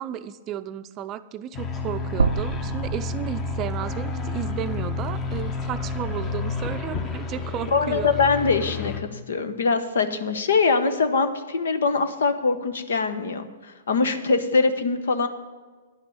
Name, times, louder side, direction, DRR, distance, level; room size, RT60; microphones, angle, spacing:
voice 1, 0.0-8.1, right 10 dB, 30° right, 11 dB, 0.5 m, -33 dB
sound 1, 1.5-9.0, left 4 dB, 30° left, 1.3 m, -30 dB
sound 2, 2.2-6.3 6.7-6.8 8.2-8.3, right 5 dB, 85° right, 0.4 m, -31 dB
voice 2, 7.7-15.3, left 4 dB, 75° left, 9 dB, 1.1 m, -23 dB
10.5 x 6.0 x 8.7 m, 1.4 s
hypercardioid pair, 115°, 0 cm